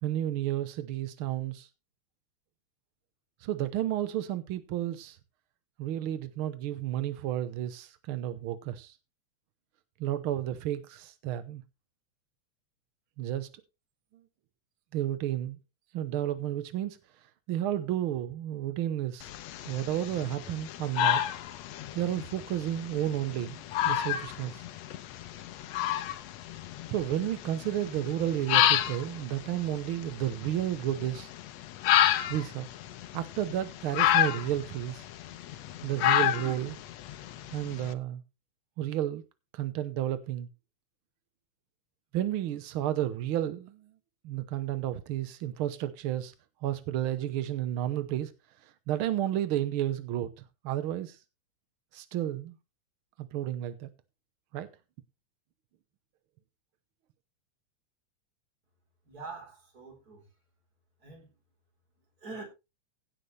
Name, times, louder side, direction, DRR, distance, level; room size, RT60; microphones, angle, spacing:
voice 1, 0.0-1.7 3.4-5.2 5.8-9.0 10.0-11.6 13.2-13.5 14.9-15.6 15.9-17.0 17.5-19.3 19.7-21.2 21.9-24.6 26.9-31.3 32.3-32.7 33.1-35.0 35.8-36.8 37.5-38.2 38.8-39.2 39.5-40.5 42.1-43.9 44.2-46.3 46.6-48.3 48.6-50.3 50.6-51.2 51.9-52.5 53.2-53.9 54.5-54.7, right 12 dB, 80° right, 1.2 m, -32 dB
sound 1, 19.2-37.9, left 11 dB, 70° left, 1.9 m, -30 dB
voice 2, 59.0-60.3 61.0-61.3 62.2-62.4, right 3 dB, 30° right, 4.3 m, -44 dB
16.0 x 8.2 x 3.2 m
omnidirectional pair, 3.4 m